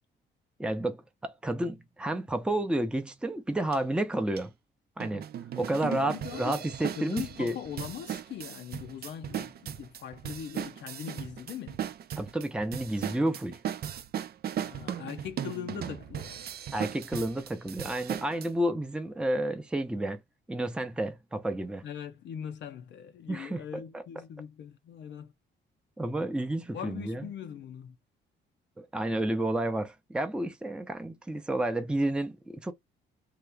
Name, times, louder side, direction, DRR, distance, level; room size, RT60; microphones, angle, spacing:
voice 1, 0.6-4.5 5.0-5.2 5.6-7.6 12.2-13.6 16.7-20.2 20.5-21.8 23.3-24.0 26.0-27.2 28.8-32.7, right 1 dB, 5° right, 0.6 m, -31 dB
sound 1, 3.7-3.8 4.4-4.5 5.0-18.5, right 9 dB, 50° right, 0.5 m, -37 dB
voice 2, 5.5-6.6 7.0-11.8 14.5-16.5 21.8-25.3 26.7-28.0, left 9 dB, 65° left, 0.6 m, -41 dB
2.8 x 2.4 x 3.4 m
cardioid pair, 90°, 20 cm